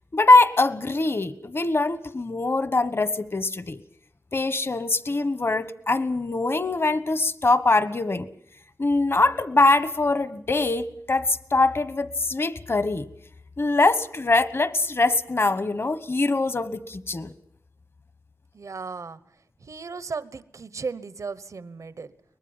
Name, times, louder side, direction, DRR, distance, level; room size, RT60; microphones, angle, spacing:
voice 1, 0.1-3.8 4.3-8.3 8.8-13.1 13.6-17.3, left 2 dB, 50° left, 15 dB, 1.2 m, -22 dB
voice 2, 18.5-19.2 19.6-22.1, right 4 dB, 80° right, 16 dB, 1.0 m, -35 dB
23.5 x 20.0 x 7.2 m, 0.71 s
wide cardioid pair, 60°, 5 cm